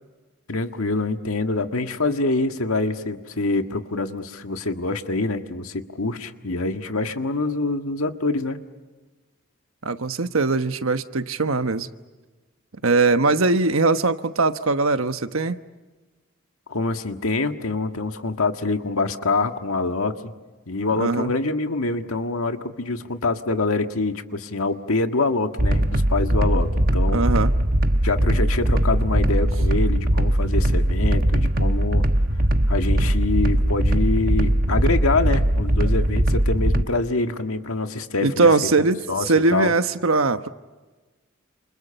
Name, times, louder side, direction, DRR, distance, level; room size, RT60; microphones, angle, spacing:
voice 1, 0.5-8.6 16.7-20.3 20.7-27.2 28.0-32.0 32.7-38.5 38.8-39.7, left 3 dB, 85° left, 1.7 m, -25 dB
voice 2, 9.8-11.9 12.8-15.6 21.0-21.3 27.1-27.5 35.8-35.9 38.2-40.5, right 3 dB, 75° right, 1.2 m, -21 dB
sound 1, 25.6-36.8, right 1 dB, 45° right, 1.2 m, -20 dB
30.0 x 28.5 x 5.6 m
head